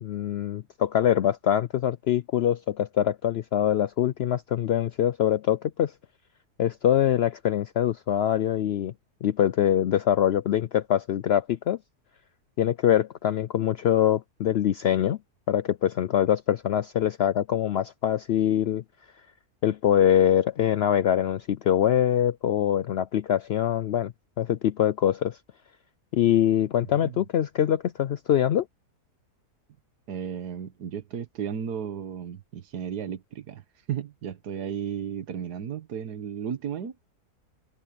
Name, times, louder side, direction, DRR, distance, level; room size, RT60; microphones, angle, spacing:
voice 1, 0.0-5.9 6.6-8.9 9.2-11.8 12.6-15.2 15.5-18.8 19.6-24.1 24.4-25.4 26.1-28.7, left 10 dB, 90° left, 0.5 m, -24 dB
voice 2, 30.1-33.6 33.9-37.0, right 8 dB, 85° right, 1.8 m, -34 dB
omnidirectional pair, 1.7 m